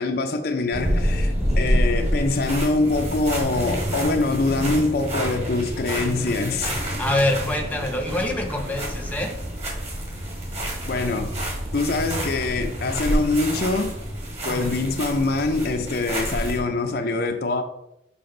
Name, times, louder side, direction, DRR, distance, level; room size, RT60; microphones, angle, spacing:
voice 1, 0.0-6.9 10.9-11.4 11.7-14.0 14.4-17.6, left 3 dB, 55° left, 0.6 m, -24 dB
sound 1, 0.7-16.6, equal, 35° right, 1.8 m, -27 dB
voice 2, 6.0-6.3 7.0-9.3 14.5-14.8, left 1 dB, 10° left, 0.8 m, -26 dB
7.0 x 5.0 x 3.8 m
head